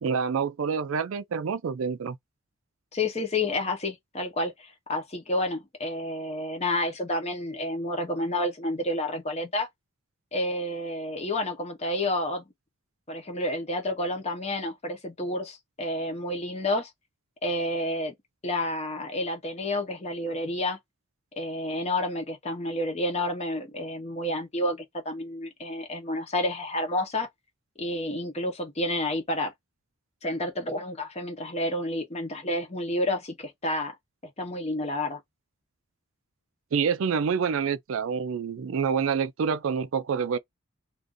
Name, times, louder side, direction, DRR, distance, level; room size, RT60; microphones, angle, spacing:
voice 1, 0.0-2.2 36.7-40.4, right 6 dB, 65° right, 0.4 m, -27 dB
voice 2, 2.9-9.7 10.3-12.5 13.1-16.9 17.4-18.1 18.4-20.8 21.3-27.3 27.8-29.5 30.2-33.9 34.4-35.2, left 1 dB, 30° left, 0.8 m, -30 dB
2.5 x 2.5 x 3.6 m
head